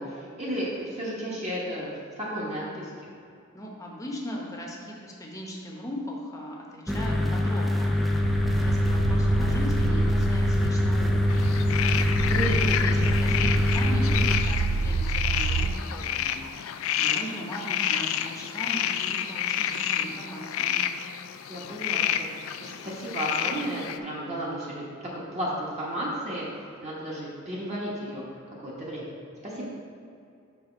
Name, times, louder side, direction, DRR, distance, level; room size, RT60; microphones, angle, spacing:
voice 1, 0.0-1.9 2.1-2.9 12.2-12.9 21.5-24.8 25.3-26.5 26.8-28.2 28.6-29.1 29.4-29.6, right 1 dB, 35° right, -6 dB, 1.2 m, -33 dB
voice 2, 3.5-11.6 12.3-20.8, equal, 15° left, -2 dB, 0.9 m, -38 dB
sound 1, 6.9-14.4, left 1 dB, ahead, 0.4 m, -24 dB
sound 2, 8.2-15.7, right 4 dB, 80° right, 0.3 m, -29 dB
sound 3, 11.3-24.0, left 9 dB, 70° left, 0.3 m, -29 dB
6.0 x 3.5 x 5.8 m, 2.5 s
head